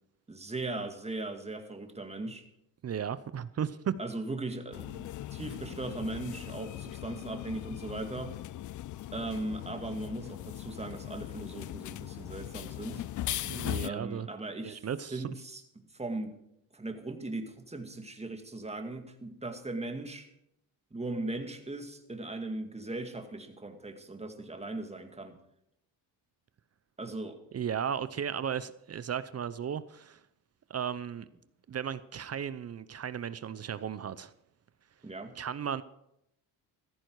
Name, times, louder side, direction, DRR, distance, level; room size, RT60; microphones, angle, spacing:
voice 1, 0.3-2.5 4.0-8.4 9.1-13.0 13.8-14.8 15.1-15.6 15.9-16.3 16.7-20.3 20.9-25.4 27.0-27.4 35.0-35.3, right 2 dB, 15° right, 2.2 m, -38 dB
voice 2, 2.8-4.0 13.4-14.3 14.6-15.2 27.5-30.2 30.7-31.3 31.7-34.3 35.4-35.8, right 8 dB, 35° right, 0.7 m, -35 dB
sound 1, 4.7-13.9, left 13 dB, 45° left, 0.5 m, -39 dB
15.5 x 14.0 x 4.7 m
cardioid pair, 105°, 44 cm